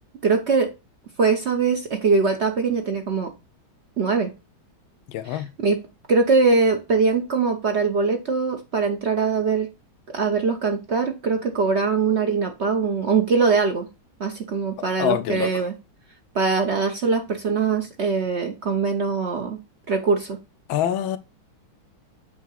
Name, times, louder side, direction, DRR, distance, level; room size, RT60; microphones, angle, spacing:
voice 1, 0.2-0.7 1.2-3.3 4.0-4.3 5.3-5.8 6.1-9.7 10.1-13.9 14.2-15.7 16.3-19.6 19.9-20.4, right 4 dB, 70° right, 0.6 m, -22 dB
voice 2, 5.1-5.5 15.0-15.6 20.7-21.2, left 11 dB, 85° left, 1.4 m, -25 dB
8.3 x 2.8 x 5.5 m
omnidirectional pair, 2.2 m